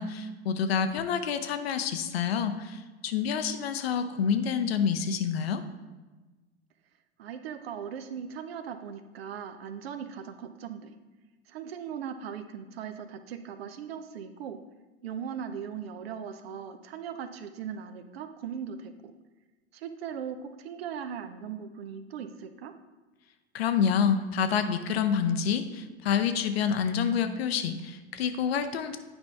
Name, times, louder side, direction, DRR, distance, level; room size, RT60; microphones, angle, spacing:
voice 1, 0.0-5.6 23.5-29.0, left 7 dB, 65° left, 9 dB, 0.7 m, -28 dB
voice 2, 7.2-10.9 11.5-14.6 15.0-19.1 19.7-22.7, right 7 dB, 65° right, 9 dB, 0.7 m, -39 dB
8.9 x 5.2 x 3.4 m, 1.2 s
figure-of-eight pair, 80°, 33 cm